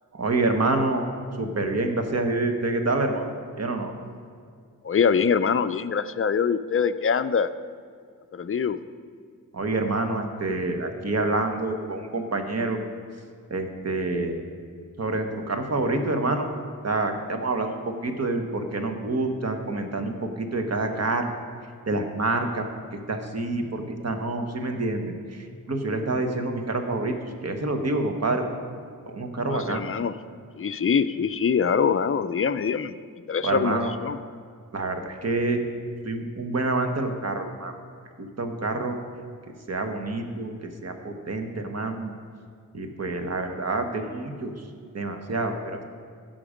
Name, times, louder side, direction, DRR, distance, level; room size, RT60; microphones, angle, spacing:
voice 1, 0.1-1.1 1.4-3.3 3.6-3.9 9.5-12.8 13.5-14.4 15.0-16.5 16.8-21.4 21.9-22.6 22.9-28.5 29.0-29.8 33.4-33.9 34.7-35.6 36.0-37.7 38.2-39.0 39.7-42.1 42.7-44.7 44.9-45.8, right 2 dB, 45° right, 5 dB, 1.2 m, -27 dB
voice 2, 4.8-7.5 8.3-8.8 29.5-30.1 30.6-33.0 33.3-34.2, left 6 dB, 40° left, 12 dB, 0.4 m, -24 dB
15.5 x 5.9 x 5.0 m, 2.2 s
wide cardioid pair, 105°, 35 cm